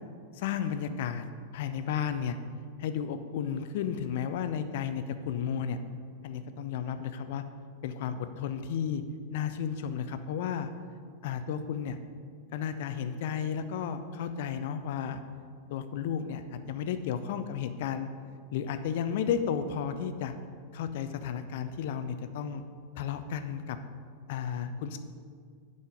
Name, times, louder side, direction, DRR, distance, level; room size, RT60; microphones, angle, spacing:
voice 1, 0.3-1.2 1.5-2.4 2.8-5.8 6.2-7.4 7.8-9.0 9.3-10.7 11.2-12.0 12.5-15.2 15.7-18.1 18.5-20.3 20.7-22.6 23.0-23.8 24.3-25.0, left 8 dB, 50° left, 10 dB, 0.6 m, -33 dB
8.0 x 5.5 x 7.7 m, 2.1 s
figure-of-eight pair, 90°, 0 cm